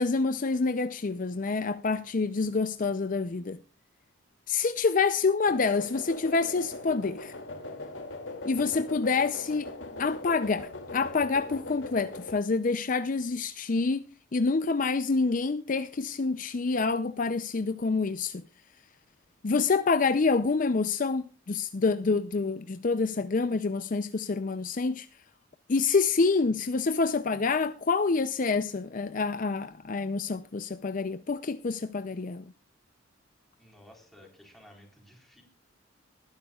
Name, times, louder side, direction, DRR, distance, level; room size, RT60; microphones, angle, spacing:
voice 1, 0.0-3.6 4.5-7.3 8.4-9.7 10.0-14.0 14.3-18.4 19.4-25.1 25.7-32.5, left 4 dB, 45° left, 0.5 m, -27 dB
sound 1, 5.5-12.3, left 2 dB, 75° left, 2.5 m, -40 dB
voice 2, 33.6-35.4, left 1 dB, ahead, 4.0 m, -54 dB
20.5 x 10.5 x 2.4 m
head